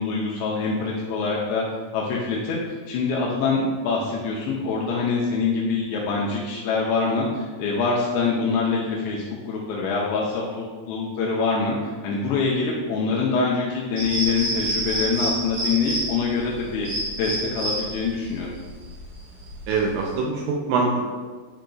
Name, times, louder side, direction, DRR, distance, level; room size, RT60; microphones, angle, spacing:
voice 1, 0.0-1.6 1.9-16.9 17.2-18.5, left 4 dB, 85° left, -3 dB, 2.6 m, -25 dB
sound 1, 14.0-20.1, right 1 dB, 60° right, 2.1 m, -28 dB
voice 2, 19.7-21.1, right 4 dB, 85° right, 0 dB, 2.7 m, -23 dB
10.0 x 5.0 x 2.3 m, 1.5 s
omnidirectional pair, 5.7 m